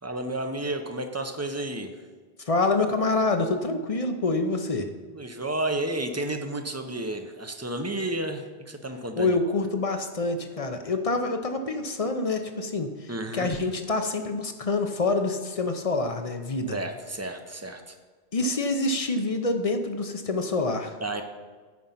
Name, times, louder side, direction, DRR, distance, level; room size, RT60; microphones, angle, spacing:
voice 1, 0.0-1.9 5.1-9.4 13.1-13.5 16.7-18.0 21.0-21.2, right 1 dB, 20° right, 6 dB, 0.5 m, -31 dB
voice 2, 2.5-4.9 9.2-16.8 18.3-20.9, left 3 dB, 40° left, 6 dB, 0.6 m, -26 dB
9.5 x 5.1 x 5.7 m, 1.5 s
omnidirectional pair, 1.0 m